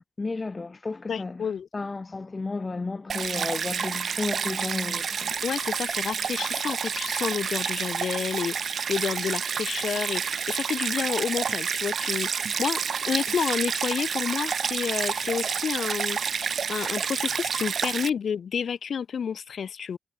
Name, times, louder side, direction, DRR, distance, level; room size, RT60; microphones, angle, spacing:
voice 1, 0.0-5.3, left 3 dB, 30° left, 0.8 m, -33 dB
voice 2, 1.1-1.7 5.4-20.0, left 7 dB, 80° left, 3.3 m, -30 dB
Stream, 3.1-18.1, right 6 dB, 70° right, 0.3 m, -29 dB
wide cardioid pair, 140°, 0 cm